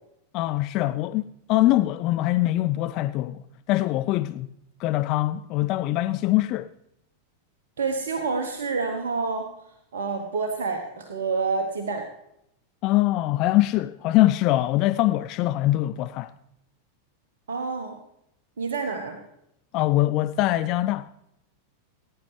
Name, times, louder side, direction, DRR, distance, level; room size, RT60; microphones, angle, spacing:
voice 1, 0.3-4.5 4.8-6.7 12.8-16.3 19.7-21.1, left 16 dB, 40° left, 0.3 m, -23 dB
voice 2, 7.8-9.5 9.9-12.1 17.5-18.0 18.6-19.2, right 4 dB, 65° right, 1.2 m, -28 dB
19.5 x 9.9 x 3.3 m
figure-of-eight pair, 90°, 0 cm